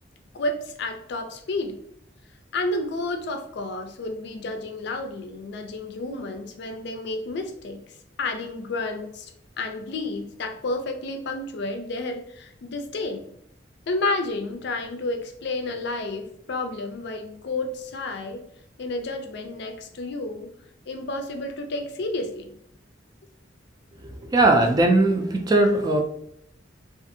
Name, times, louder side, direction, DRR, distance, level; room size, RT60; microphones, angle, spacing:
voice 1, 0.3-1.8 2.5-7.8 8.2-9.3 9.6-13.2 13.9-18.4 18.8-20.5 20.9-22.5, left 2 dB, 65° left, 6 dB, 0.4 m, -31 dB
voice 2, 24.2-26.0, right 2 dB, 20° right, 4 dB, 0.3 m, -19 dB
2.6 x 2.4 x 2.6 m, 0.70 s
head